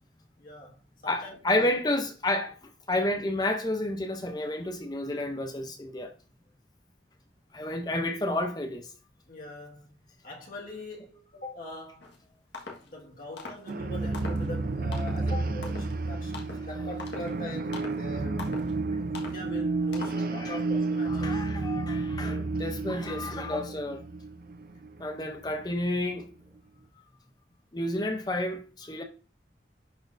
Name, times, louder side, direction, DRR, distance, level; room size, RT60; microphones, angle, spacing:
voice 1, 0.4-0.8 1.0-1.7 9.3-12.1 12.8-18.6 19.2-21.5, left 1 dB, 50° left, 1.7 m, -42 dB
voice 2, 1.1-2.6 2.9-6.1 7.5-8.9 20.1-20.6 21.1-24.0 25.0-26.3 27.7-29.0, left 1 dB, 20° left, 0.6 m, -30 dB
sound 1, 12.0-12.2 12.5-12.9 13.4-13.7 14.1-14.5 14.9-15.2 15.6-16.0 16.3-16.7 17.0-17.4 17.7-18.0 18.4-18.7 19.1-19.4 19.9-20.2, left 3 dB, 75° left, 1.4 m, -42 dB
spectral city, 13.7-26.2, right 3 dB, 50° right, 0.4 m, -31 dB
11.0 x 4.3 x 2.6 m
head